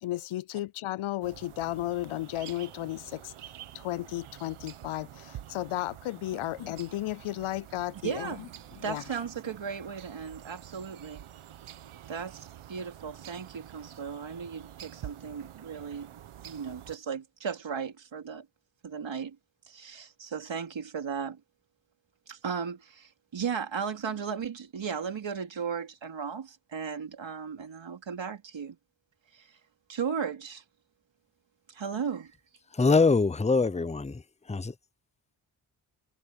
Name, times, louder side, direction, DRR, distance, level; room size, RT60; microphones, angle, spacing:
voice 1, 0.0-3.3 3.7-8.5 8.8-9.0, left 15 dB, 80° left, 0.7 m, -34 dB
sound 1, 1.2-17.0, right 11 dB, 85° right, 1.6 m, -48 dB
voice 2, 8.0-8.5 8.8-11.2 12.1-16.1 16.4-18.5 18.8-19.4 19.7-21.4 22.3-28.8 29.3-29.5 29.9-30.6 31.7-32.3, right 6 dB, 65° right, 3.2 m, -36 dB
voice 3, 32.7-34.2 34.5-34.7, left 4 dB, 15° left, 0.8 m, -23 dB
cardioid pair, 50°, 49 cm